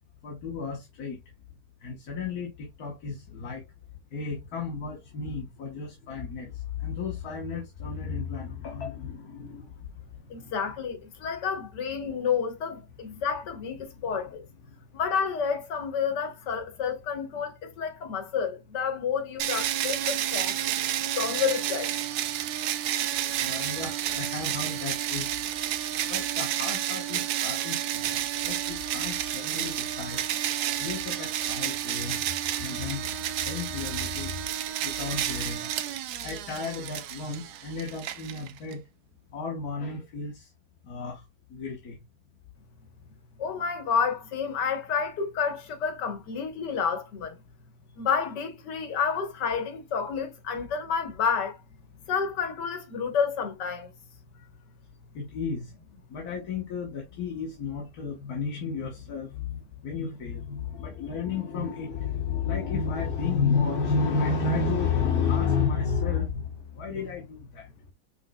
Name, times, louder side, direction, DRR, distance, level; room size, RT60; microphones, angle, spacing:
voice 1, 0.2-1.2 1.8-3.6 4.1-9.7 10.3-10.5 23.4-25.3 26.1-28.1 28.4-30.2 30.8-33.1 33.4-34.4 34.8-35.7 36.2-38.8 39.3-40.5 40.9-41.2 41.5-42.0 55.1-55.7 56.1-67.7, left 5 dB, 65° left, 1.6 m, -32 dB
voice 2, 10.3-14.4 14.9-20.6 21.2-21.9 43.4-47.4 48.0-51.6 52.1-53.9, left 6 dB, 85° left, 1.8 m, -29 dB
sound 1, 19.4-38.7, right 11 dB, 75° right, 1.1 m, -30 dB
5.7 x 4.0 x 2.2 m
omnidirectional pair, 1.8 m